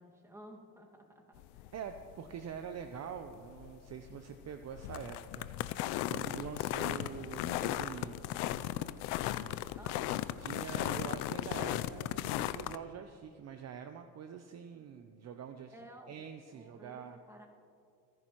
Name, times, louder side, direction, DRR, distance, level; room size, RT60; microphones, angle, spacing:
voice 1, 0.0-1.7 9.8-10.3 15.7-16.2 16.5-17.5, equal, 5° right, 0 dB, 1.9 m, -54 dB
sound 1, 1.4-12.8, left 14 dB, 80° left, 0.6 m, -36 dB
voice 2, 1.7-5.5 6.1-8.2 10.4-15.7 16.1-17.2, right 8 dB, 40° right, 8 dB, 0.7 m, -45 dB
28.0 x 11.0 x 3.0 m, 2.5 s
cardioid pair, 110°, 40 cm